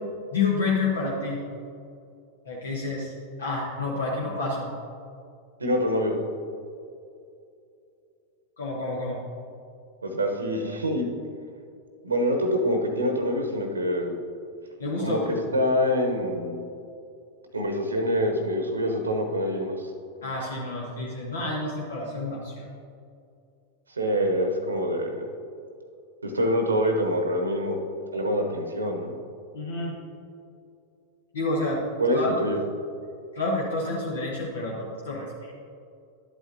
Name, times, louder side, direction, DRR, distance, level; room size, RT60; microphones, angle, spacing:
voice 1, 0.3-1.4 2.4-3.1 3.4-4.7 8.6-9.2 14.8-15.3 20.2-22.7 29.5-29.9 31.3-31.8 32.1-32.4 33.3-35.5, left 3 dB, 65° left, -3 dB, 1.2 m, -29 dB
voice 2, 5.6-6.2 10.0-11.1 12.0-14.1 15.0-16.6 17.5-19.9 24.0-25.2 26.2-27.8 28.1-29.1 32.0-32.6, equal, 75° right, 4 dB, 0.9 m, -25 dB
11.0 x 8.4 x 2.7 m, 2.5 s
figure-of-eight pair, 90°, 0 cm